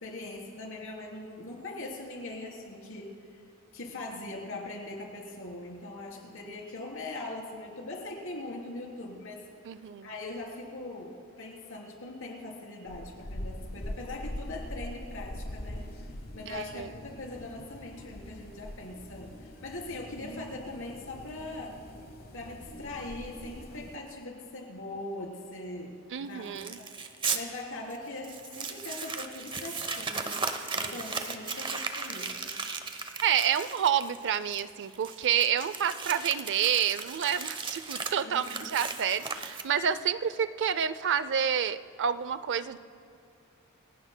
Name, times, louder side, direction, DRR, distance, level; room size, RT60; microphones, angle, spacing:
voice 1, 0.0-3.4 3.7-9.4 10.0-15.8 16.3-21.8 22.3-26.9 27.3-30.4 30.7-32.6 38.2-38.8, left 2 dB, 65° left, 0 dB, 3.5 m, -41 dB
voice 2, 9.6-10.1 16.5-16.9 26.1-26.8 33.2-42.8, right 8 dB, 55° right, 14 dB, 0.5 m, -29 dB
sound 1, 12.9-24.0, left 1 dB, 45° left, 1.2 m, -43 dB
Crumpling crinkling, 26.6-27.4 27.9-28.0 28.2-39.9, right 4 dB, 25° right, 0.8 m, -36 dB
28.5 x 17.0 x 2.2 m, 2.6 s
head